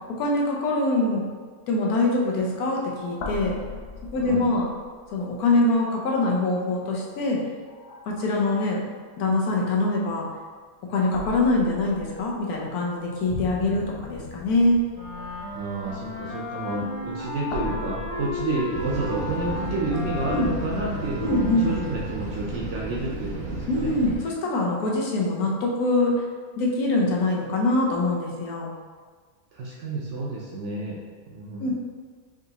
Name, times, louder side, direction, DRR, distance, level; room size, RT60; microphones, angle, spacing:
voice 1, 0.1-1.3 1.7-3.6 4.1-4.7 5.1-7.4 8.1-8.8 9.2-10.3 10.9-14.8 17.6-17.7 20.3-20.5 21.2-21.7 23.7-26.1 26.6-28.7 31.6-31.7, left 2 dB, 90° left, -2 dB, 1.2 m, -24 dB
sound 1, 1.9-2.0 2.3-2.5 2.8-5.1 5.6-6.2 7.0-7.3 7.7-8.5 10.0-10.5 11.1-19.7, left 4 dB, 70° left, 0.6 m, -40 dB
sound 2, 14.9-22.3, left 3 dB, 35° right, 0.6 m, -35 dB
voice 2, 15.5-23.9 29.5-31.0 31.3-31.7, right 2 dB, 65° right, -3 dB, 0.8 m, -30 dB
sound 3, 18.7-24.2, right 2 dB, 80° right, 1.2 m, -33 dB
4.9 x 2.5 x 2.8 m, 1.5 s
omnidirectional pair, 1.5 m